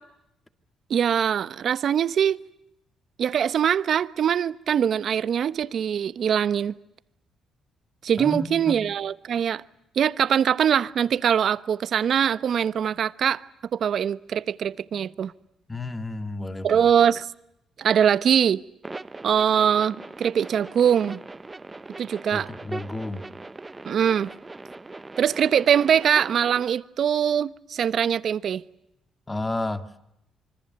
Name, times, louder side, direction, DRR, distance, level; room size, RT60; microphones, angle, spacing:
voice 1, 0.9-2.4 3.2-6.7 8.0-9.6 10.0-13.4 13.7-15.3 16.6-17.3 17.8-18.6 19.2-21.2 22.0-22.5 23.8-24.3 25.2-28.6, right 8 dB, 60° right, 1.0 m, -22 dB
voice 2, 8.2-8.8 15.7-17.0 22.3-23.3 29.3-30.0, left 2 dB, 20° left, 2.3 m, -32 dB
sound 1, 18.8-26.6, right 2 dB, 20° right, 1.0 m, -40 dB
25.5 x 25.0 x 8.1 m
cardioid pair, 90°, 0 cm